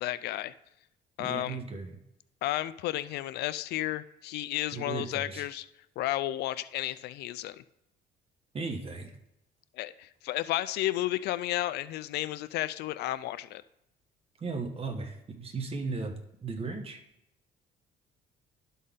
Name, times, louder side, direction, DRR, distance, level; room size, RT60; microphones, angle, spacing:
voice 1, 0.0-0.5 1.2-1.6 2.4-5.6 6.0-7.6 9.8-13.6, left 15 dB, 75° left, 15 dB, 0.4 m, -32 dB
voice 2, 1.2-2.0 4.7-5.4 8.5-9.1 14.4-16.1 16.4-17.0, right 4 dB, 35° right, 3 dB, 1.3 m, -36 dB
12.0 x 4.1 x 3.7 m, 0.83 s
cardioid pair, 110°, 17 cm